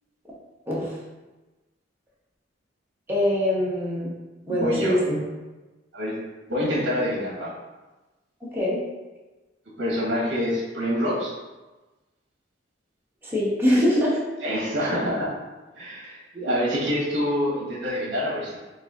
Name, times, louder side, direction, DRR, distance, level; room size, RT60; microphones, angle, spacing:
voice 1, 3.1-4.1 4.5-5.2 8.5-8.8 13.2-14.2, equal, 10° right, -7 dB, 1.0 m, -23 dB
voice 2, 4.5-5.0 5.9-6.1 6.5-7.5 9.8-11.3 14.4-15.3 15.7-18.6, equal, 70° right, -5 dB, 1.2 m, -26 dB
3.9 x 2.4 x 3.6 m, 1.2 s
head